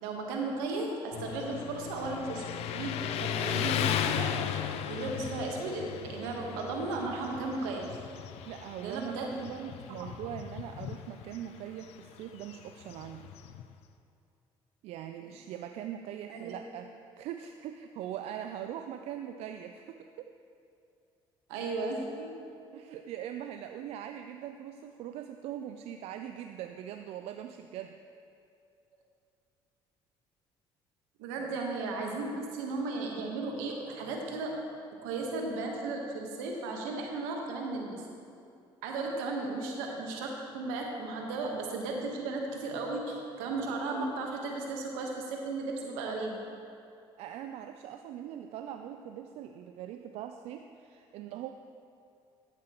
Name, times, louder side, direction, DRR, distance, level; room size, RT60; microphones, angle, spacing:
voice 1, 0.0-4.3 4.8-8.0 8.8-9.7 10.0-10.1 16.3-16.6 21.5-22.3 31.2-34.6 35.0-38.1 38.8-46.4, right 3 dB, 90° right, 1 dB, 1.2 m, -35 dB
Motorcycle, 1.1-13.7, left 9 dB, 70° left, 0.5 m, -36 dB
voice 2, 8.4-13.3 14.8-20.3 22.7-28.0 31.4-31.5 47.2-51.5, right 10 dB, 70° right, 7 dB, 0.4 m, -41 dB
11.0 x 8.9 x 3.0 m, 2.5 s
supercardioid pair, 70°, 11 cm